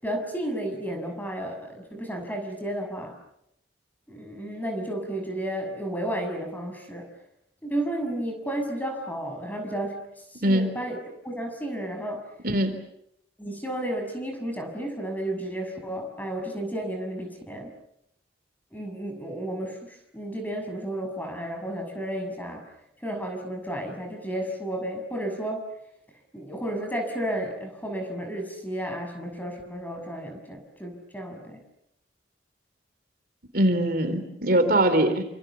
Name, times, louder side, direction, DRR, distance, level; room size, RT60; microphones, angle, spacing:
voice 1, 0.0-3.2 4.1-7.1 7.6-10.0 10.3-12.2 13.4-17.7 18.7-19.8 20.1-22.6 23.0-25.6 26.3-31.6, right 1 dB, 10° left, 5 dB, 6.5 m, -32 dB
voice 2, 12.4-12.8 33.5-35.2, right 1 dB, 55° right, 8 dB, 3.7 m, -22 dB
29.0 x 27.0 x 7.1 m, 0.77 s
head